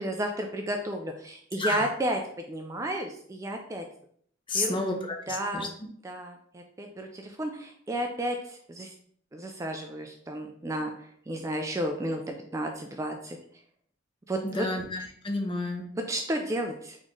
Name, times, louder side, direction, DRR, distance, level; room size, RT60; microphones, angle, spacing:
voice 1, 0.0-3.8 4.5-4.8 5.3-5.7 6.0-8.9 9.3-13.4 14.3-14.7 16.0-17.0, right 1 dB, 15° right, 3 dB, 0.3 m, -32 dB
voice 2, 1.6-1.9 4.5-5.7 14.4-15.9, left 2 dB, 30° left, 2 dB, 0.7 m, -31 dB
4.0 x 3.1 x 3.7 m, 0.62 s
head